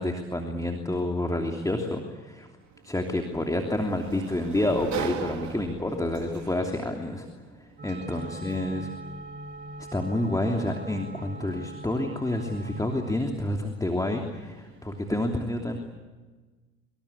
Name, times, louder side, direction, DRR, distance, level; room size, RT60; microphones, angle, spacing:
voice 1, 0.0-2.5 2.8-7.3 7.6-8.8 9.8-15.8, left 1 dB, 10° left, 2 dB, 3.0 m, -29 dB
Sliding door, 2.6-15.2, right 9 dB, 50° right, 2.7 m, -43 dB
sound 1, 7.8-13.1, right 1 dB, 30° right, 3.0 m, -41 dB
25.5 x 24.5 x 8.6 m, 1.3 s
hypercardioid pair, 60°, 36 cm